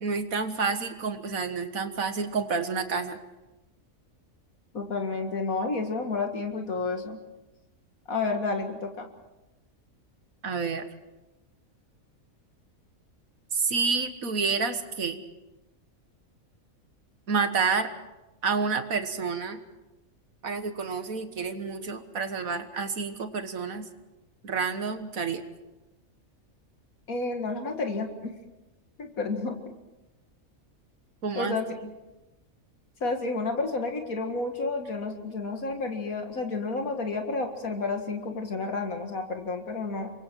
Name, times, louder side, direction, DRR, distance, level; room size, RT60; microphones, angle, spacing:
voice 1, 0.0-3.2 10.4-10.9 13.5-15.2 17.3-17.9 18.4-19.6 20.4-23.8 24.4-25.4 31.2-31.6 31.8-31.9, right 5 dB, 80° right, 8 dB, 1.9 m, -29 dB
voice 2, 4.7-7.2 8.1-9.1 27.1-28.3 29.0-29.7 31.4-31.6 33.0-40.1, left 3 dB, 80° left, 4 dB, 2.4 m, -30 dB
28.0 x 23.5 x 4.6 m, 1.0 s
omnidirectional pair, 1.5 m